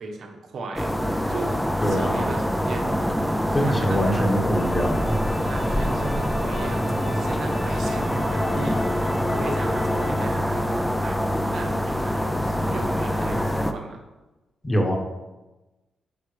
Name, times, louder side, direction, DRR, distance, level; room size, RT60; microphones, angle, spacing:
voice 1, 0.0-1.6 1.9-2.4 2.7-2.9 3.6-4.4 5.4-11.2 11.5-14.0, right 3 dB, 65° right, 1 dB, 1.3 m, -36 dB
sound 1, 0.8-13.7, equal, 5° left, 0.5 m, -25 dB
voice 2, 1.8-2.2 3.5-5.2 14.6-15.0, equal, 20° left, 2 dB, 1.3 m, -23 dB
sound 2, 4.6-10.2, left 3 dB, 50° left, 2.1 m, -37 dB
10.0 x 5.6 x 3.3 m, 1.1 s
wide cardioid pair, 135°, 0 cm